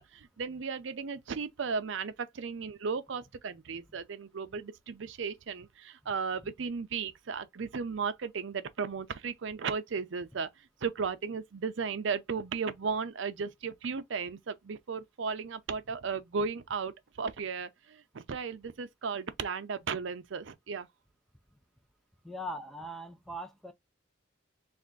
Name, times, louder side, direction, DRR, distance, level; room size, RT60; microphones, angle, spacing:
voice 1, 0.0-20.9, right 5 dB, 75° right, 0.5 m, -35 dB
voice 2, 22.2-23.7, equal, ahead, 0.4 m, -40 dB
3.4 x 2.4 x 3.8 m
head